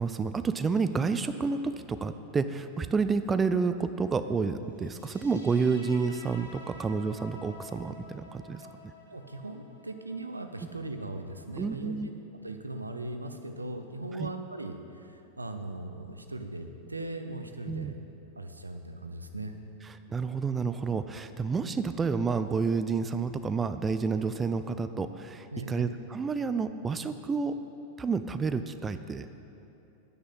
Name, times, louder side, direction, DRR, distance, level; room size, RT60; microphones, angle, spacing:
voice 1, 0.0-8.6 11.6-12.1 14.1-14.3 17.7-17.9 19.8-27.6 28.0-29.3, right 5 dB, 15° right, 10 dB, 0.4 m, -30 dB
sound 1, 4.8-11.8, left 2 dB, 75° left, 1.4 m, -51 dB
voice 2, 9.1-11.9 12.4-17.9 18.4-19.5 25.5-25.9, right 2 dB, 80° right, 7 dB, 0.7 m, -39 dB
10.0 x 9.4 x 5.6 m, 2.8 s
figure-of-eight pair, 90°, 0 cm